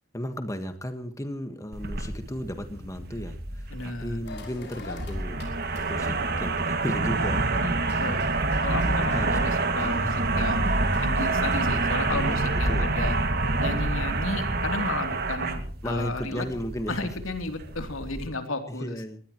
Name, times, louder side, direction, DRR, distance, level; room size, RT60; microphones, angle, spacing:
voice 1, 0.1-5.4 5.9-7.5 8.7-9.4 9.8-10.0 12.1-12.4 12.7-12.9 15.8-17.1 18.7-19.2, equal, 15° left, 8 dB, 1.5 m, -35 dB
sound 1, 1.7-18.3, right 2 dB, 50° right, 2.1 m, -27 dB
voice 2, 3.7-4.2 7.6-8.2 8.6-10.1 10.3-10.7 11.0-13.2 13.6-16.5 16.9-19.0, left 2 dB, 80° left, 6 dB, 3.1 m, -33 dB
sound 2, 4.2-7.4 7.8-12.8, left 3 dB, 55° left, 5.8 m, -48 dB
23.0 x 20.0 x 3.1 m, 0.41 s
head